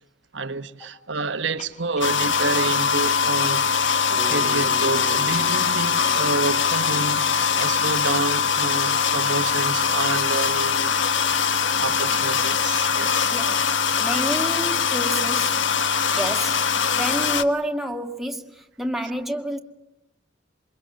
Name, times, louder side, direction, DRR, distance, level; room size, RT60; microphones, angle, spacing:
voice 1, 0.3-3.6 4.1-10.9 11.8-13.3 17.0-17.1, right 3 dB, 70° right, 1.3 m, -29 dB
Clock, 1.6-13.6, left 3 dB, 35° left, 4.2 m, -47 dB
sound 1, 2.0-17.4, left 6 dB, 75° left, 1.4 m, -22 dB
Bass guitar, 4.2-8.3, left 1 dB, 15° left, 1.6 m, -41 dB
voice 2, 13.3-13.7 14.0-15.6 16.2-19.6, right 1 dB, ahead, 2.0 m, -29 dB
27.5 x 24.0 x 7.7 m
head